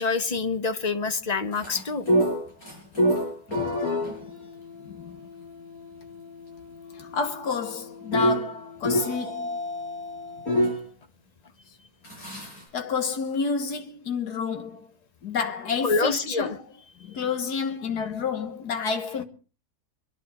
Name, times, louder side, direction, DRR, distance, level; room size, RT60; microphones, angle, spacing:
voice 1, 0.0-2.1 15.8-16.6, left 4 dB, 35° left, 0.8 m, -26 dB
sound 1, 1.5-10.8 12.0-12.6, equal, 65° left, 6.7 m, -28 dB
voice 2, 4.0-4.4 4.8-5.2 6.9-9.6 12.7-14.9 15.2-16.6 17.0-19.2, left 5 dB, 85° left, 1.9 m, -30 dB
25.0 x 11.0 x 4.2 m
omnidirectional pair, 1.7 m